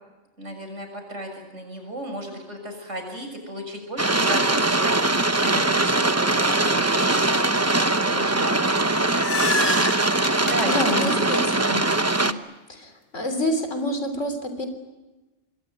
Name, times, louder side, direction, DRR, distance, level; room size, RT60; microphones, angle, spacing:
voice 1, 0.4-4.9 5.3-7.5 8.0-8.6 10.4-11.1 11.7-11.8 12.2-12.4, right 1 dB, 75° right, 4 dB, 6.8 m, -34 dB
sound 1, 4.0-12.3, right 2 dB, 15° right, 0.8 m, -21 dB
sound 2, 8.7-12.0, left 3 dB, 30° left, 1.3 m, -30 dB
voice 2, 10.7-11.8 12.7-14.7, left 1 dB, 80° left, 7 dB, 3.9 m, -27 dB
26.0 x 21.5 x 9.4 m, 1.1 s
omnidirectional pair, 1.2 m